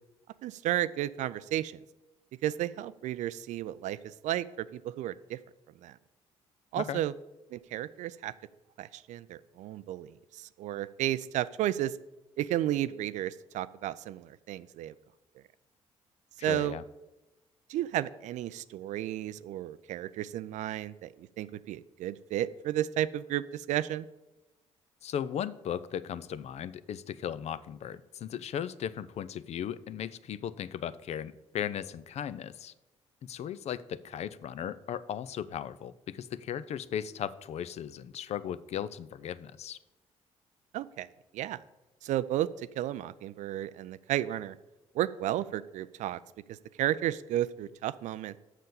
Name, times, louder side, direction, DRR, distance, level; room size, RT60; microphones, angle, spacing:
voice 1, 0.4-1.7 2.4-5.4 5.8-5.9 6.7-7.1 7.5-8.3 8.8-12.0 12.4-14.9 16.4-16.8 17.7-21.1 21.4-24.0 40.7-41.1 41.3-41.6 42.0-42.5 42.8-44.5 44.9-46.2 46.5-48.4, right 13 dB, 50° right, 16 dB, 0.4 m, -33 dB
voice 2, 16.5-16.8 25.0-32.7 33.2-39.8, left 9 dB, 45° left, 16 dB, 0.5 m, -37 dB
7.4 x 6.5 x 6.9 m, 1.0 s
figure-of-eight pair, 45°, 16 cm